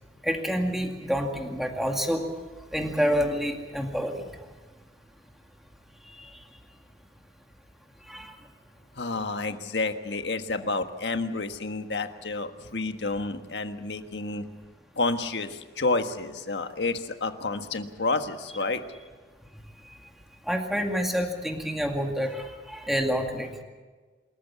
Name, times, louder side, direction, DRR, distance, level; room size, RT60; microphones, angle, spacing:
voice 1, 0.2-2.2 2.7-4.2 8.1-8.3 20.5-23.5, equal, ahead, 2 dB, 2.2 m, -28 dB
voice 2, 9.0-14.4 15.0-18.8, left 3 dB, 80° left, 7 dB, 1.5 m, -30 dB
27.0 x 14.0 x 8.5 m, 1.4 s
head